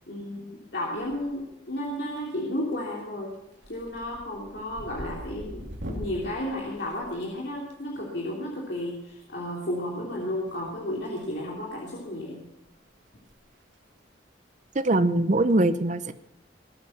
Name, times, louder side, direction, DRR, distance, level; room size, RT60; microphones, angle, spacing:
voice 1, 0.1-3.3 3.7-12.4, left 1 dB, 60° left, -4 dB, 3.1 m, -33 dB
sound 1, 1.0-1.5 1.8-2.4 2.7-3.0 3.3-7.7 9.1-9.2 10.5-11.3 11.6-11.8 12.3-12.4 12.7-12.8 13.1-13.3 13.6-13.7 15.2-15.5, equal, 80° right, 2.5 m, -42 dB
voice 2, 14.7-16.1, right 2 dB, 40° right, 11 dB, 0.6 m, -22 dB
20.0 x 8.9 x 5.8 m, 0.90 s
head